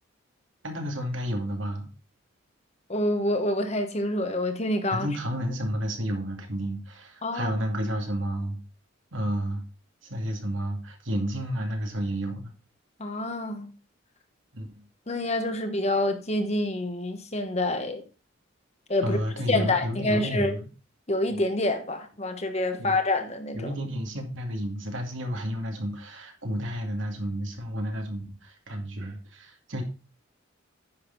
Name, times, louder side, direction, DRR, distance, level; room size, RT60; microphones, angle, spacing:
voice 1, 0.6-1.9 4.9-8.6 9.1-9.6 10.0-12.5 14.5-14.8 19.0-20.7 22.8-23.0 23.5-29.8, equal, 75° right, 2.5 m, -31 dB
voice 2, 2.9-5.1 7.2-7.5 13.0-13.7 15.1-18.0 18.9-19.2 19.5-20.6 21.1-23.7, left 1 dB, 35° left, 1.2 m, -27 dB
9.8 x 6.6 x 3.9 m
head